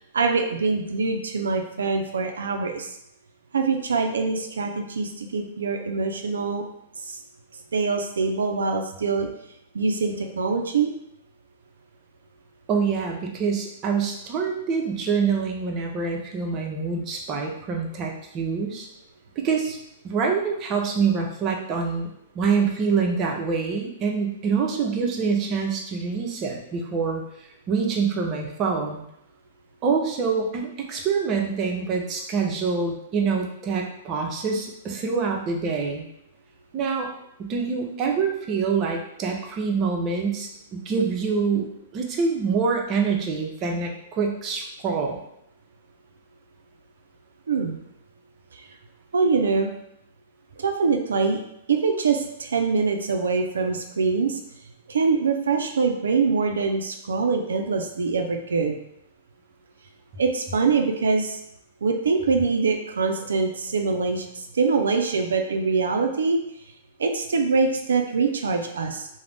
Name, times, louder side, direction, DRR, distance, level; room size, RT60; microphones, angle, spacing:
voice 1, 0.1-2.9 3.5-6.6 7.1-7.2 7.7-9.3 9.7-10.9 47.5-47.8 49.1-49.7 50.6-51.4 51.7-54.4 54.9-58.8 60.2-61.4 61.8-66.4 67.0-69.1, right 4 dB, 85° right, 4 dB, 0.3 m, -24 dB
voice 2, 12.7-18.9 19.4-19.8 20.0-22.1 22.3-27.3 27.7-29.0 29.8-36.1 36.7-37.1 37.4-41.7 41.9-45.2, right 5 dB, 35° right, 1 dB, 0.5 m, -25 dB
2.4 x 2.0 x 3.3 m, 0.78 s
hypercardioid pair, 115°, 0 cm